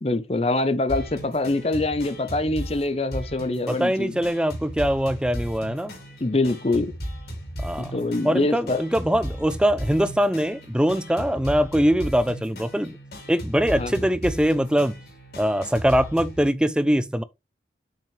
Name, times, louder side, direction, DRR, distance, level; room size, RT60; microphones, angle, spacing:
voice 1, 0.0-4.2 6.2-6.9 7.8-8.8 13.7-13.9, left 2 dB, 35° left, 0.7 m, -24 dB
sound 1, 0.9-16.4, equal, 60° left, 2.8 m, -36 dB
voice 2, 3.7-5.9 7.6-7.9 8.2-13.0 13.3-14.9 15.4-17.2, equal, 5° right, 0.4 m, -22 dB
7.0 x 5.6 x 3.2 m
head